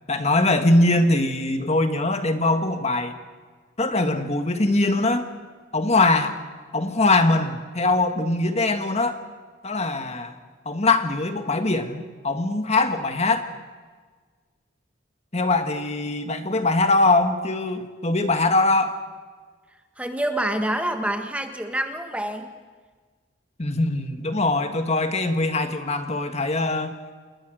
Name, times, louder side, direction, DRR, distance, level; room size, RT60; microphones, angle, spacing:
voice 1, 0.1-3.1 3.8-5.3 5.7-6.4 6.7-9.2 9.6-10.3 10.6-13.5 15.3-18.9 23.6-27.0, left 2 dB, 35° left, 7 dB, 1.6 m, -22 dB
voice 2, 20.0-22.5, right 1 dB, 5° right, 6 dB, 1.5 m, -27 dB
29.0 x 21.0 x 6.3 m, 1.5 s
head